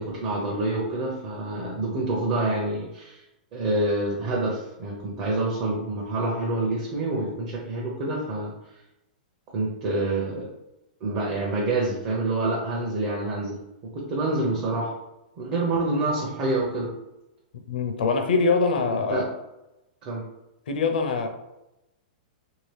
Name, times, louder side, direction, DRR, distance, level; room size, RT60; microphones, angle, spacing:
voice 1, 0.0-3.2 3.5-8.5 9.5-10.5 11.0-13.6 13.8-14.9 15.4-16.9 19.1-19.3 20.0-20.2, right 2 dB, 35° right, 0.6 m, -27 dB
voice 2, 17.7-19.3 20.7-21.3, left 4 dB, 80° left, 0.6 m, -23 dB
2.9 x 2.8 x 3.2 m
hypercardioid pair, 150°, 5 cm